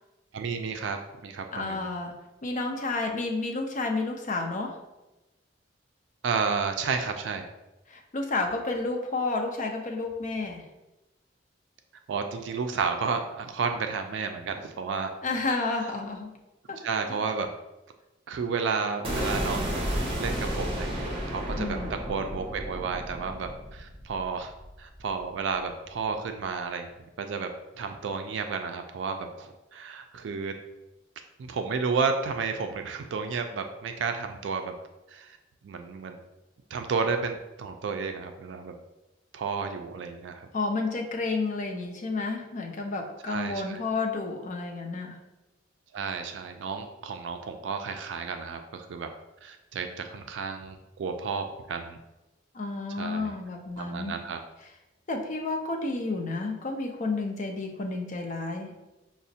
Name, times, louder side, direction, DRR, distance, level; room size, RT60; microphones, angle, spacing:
voice 1, 0.3-1.9 6.2-7.5 12.1-15.1 16.8-17.5 18.3-24.5 24.8-26.9 27.2-27.5 27.8-30.6 31.4-34.7 35.1-35.4 35.6-36.2 36.7-38.7 39.3-40.5 43.3-43.8 45.9-49.1 49.4-52.0 53.0-53.4 53.8-54.4, right 5 dB, 75° right, 6 dB, 0.3 m, -32 dB
voice 2, 1.5-2.1 2.4-4.8 7.9-10.6 15.2-16.3 16.7-16.8 17.1-17.2 21.5-21.9 40.5-45.1 52.5-54.2 55.1-58.8, left 3 dB, 45° left, 2 dB, 0.5 m, -31 dB
sound 1, 19.0-25.1, equal, 30° right, 0.9 m, -32 dB
5.8 x 2.0 x 2.7 m, 1.0 s
head